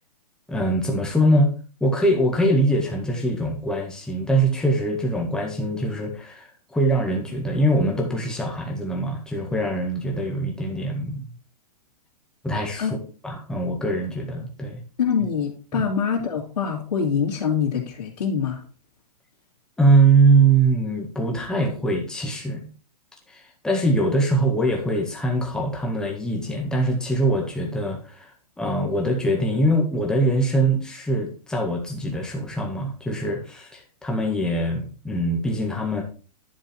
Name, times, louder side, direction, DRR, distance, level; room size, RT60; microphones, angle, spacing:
voice 1, 0.5-1.5 1.8-11.3 12.4-12.9 13.2-14.8 15.7-15.8 19.8-22.7 23.3-28.3 28.6-36.0, right 2 dB, 5° left, 0 dB, 1.7 m, -22 dB
voice 2, 15.0-18.6, left 7 dB, 85° left, -7 dB, 2.8 m, -24 dB
11.0 x 4.7 x 4.4 m, 0.38 s
hypercardioid pair, 155°, 21 cm